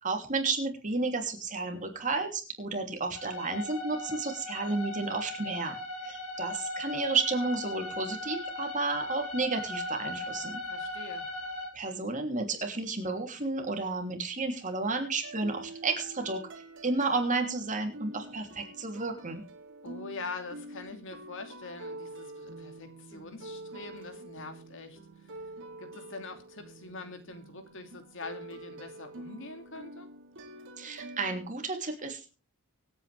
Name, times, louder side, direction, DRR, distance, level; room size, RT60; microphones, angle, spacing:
voice 1, 0.0-5.7 6.0-10.6 11.7-16.4 16.8-19.4 30.8-32.3, right 3 dB, 35° right, 3.2 m, -32 dB
sound 1, 3.1-11.7, left 2 dB, 85° left, 3.8 m, -38 dB
voice 2, 10.7-11.3 19.8-25.0 25.3-25.4 25.8-30.1, left 3 dB, 60° left, 2.5 m, -44 dB
sound 2, 15.2-31.5, right 2 dB, 60° right, 3.0 m, -46 dB
24.5 x 9.0 x 3.5 m
head